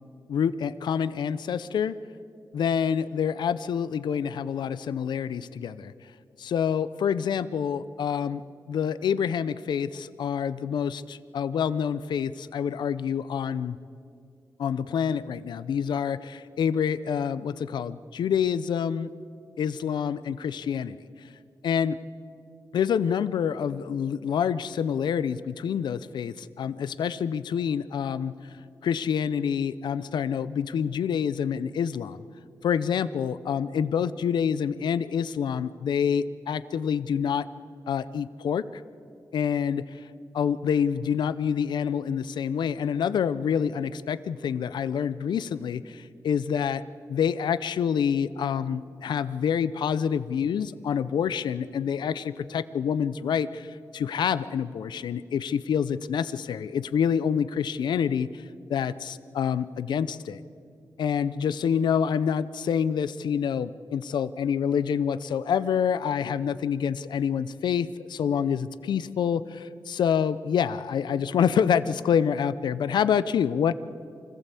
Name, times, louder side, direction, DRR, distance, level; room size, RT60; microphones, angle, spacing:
voice 1, 0.3-1.9 2.5-5.9 6.4-8.4 8.7-13.8 14.6-19.1 19.6-21.0 21.6-22.0 22.7-28.3 28.8-32.2 32.6-37.5 37.9-38.7 39.3-39.8 40.3-46.8 47.1-58.4 58.7-60.4 61.0-73.7, left 7 dB, 90° left, 16 dB, 0.6 m, -27 dB
24.5 x 15.0 x 8.3 m, 2.3 s
cardioid pair, 55°, 7 cm